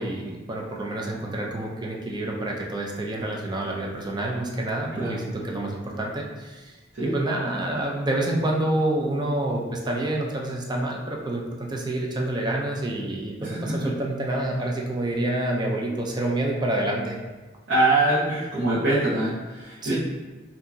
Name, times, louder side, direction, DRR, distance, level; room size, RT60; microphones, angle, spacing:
voice 1, 0.0-6.8 7.0-17.2 19.8-20.0, right 1 dB, 20° right, -1 dB, 0.6 m, -28 dB
voice 2, 17.7-20.0, right 2 dB, 70° right, -11 dB, 1.0 m, -23 dB
4.8 x 2.7 x 2.7 m, 1.2 s
head